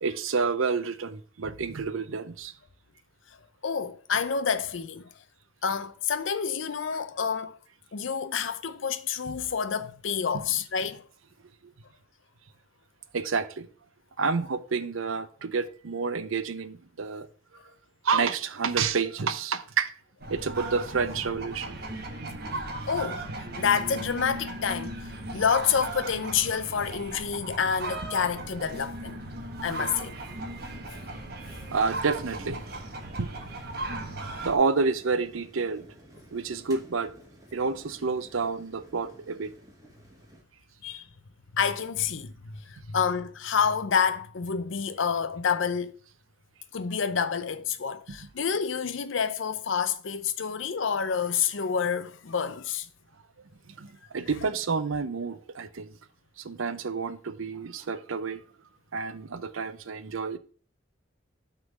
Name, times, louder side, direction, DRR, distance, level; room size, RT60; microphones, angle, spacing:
voice 1, 0.0-2.5 11.6-11.7 13.1-13.7 14.2-17.3 18.0-19.9 20.3-21.8 29.8-29.9 31.7-32.6 33.2-33.3 34.4-35.8 36.3-37.1 37.5-39.5 48.1-48.2 53.7-55.9 56.4-58.4 58.9-60.4, right 5 dB, 85° right, 0.6 m, -29 dB
voice 2, 3.6-5.1 5.6-7.6 7.9-11.0 22.9-29.2 29.6-30.1 40.8-41.1 41.5-46.0 46.7-52.9, left 6 dB, 70° left, 0.6 m, -28 dB
sound 1, 20.2-34.5, right 2 dB, 50° right, 1.2 m, -37 dB
sound 2, 29.6-40.4, right 1 dB, 15° right, 1.4 m, -53 dB
6.2 x 3.8 x 6.2 m
head